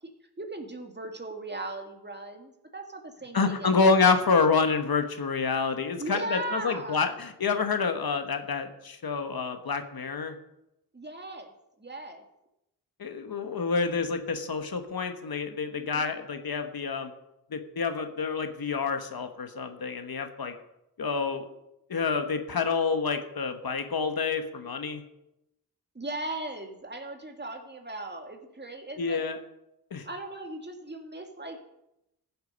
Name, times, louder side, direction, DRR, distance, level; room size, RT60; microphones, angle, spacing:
voice 1, 0.4-3.9 6.0-7.1 10.9-11.5 11.8-12.2 15.7-16.2 25.9-29.2 30.1-31.6, right 2 dB, 25° right, 4 dB, 2.0 m, -38 dB
voice 2, 3.3-10.3 13.0-17.1 17.5-20.5 21.0-21.5 21.9-25.0 29.0-29.4 29.9-30.1, left 4 dB, 65° left, 7 dB, 1.4 m, -28 dB
15.0 x 7.8 x 5.2 m, 0.86 s
cardioid pair, 65°, 40 cm